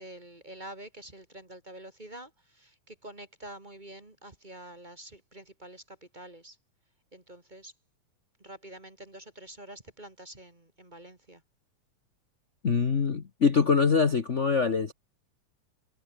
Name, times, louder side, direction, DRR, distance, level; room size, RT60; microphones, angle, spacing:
voice 1, 0.0-6.6 7.1-7.7 8.4-11.4, right 1 dB, 15° right, 2.0 m, -47 dB
voice 2, 12.6-14.9, left 5 dB, 55° left, 0.7 m, -24 dB
omnidirectional pair, 3.6 m